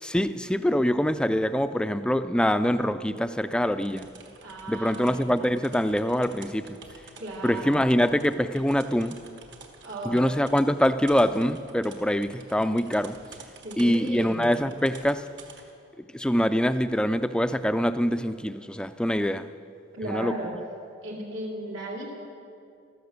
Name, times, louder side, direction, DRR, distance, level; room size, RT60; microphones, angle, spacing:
voice 1, 0.0-4.1 4.7-6.8 7.4-9.2 10.0-13.2 13.8-15.2 16.0-19.5 20.1-20.3, equal, 5° left, 11 dB, 0.4 m, -24 dB
sound 1, 3.7-15.8, right 4 dB, 60° right, 1.5 m, -50 dB
voice 2, 4.4-5.3 7.2-7.9 9.8-10.3 13.6-14.5 19.9-20.5 21.0-22.2, right 1 dB, 80° right, -3 dB, 2.6 m, -35 dB
14.5 x 13.0 x 6.7 m, 2.4 s
head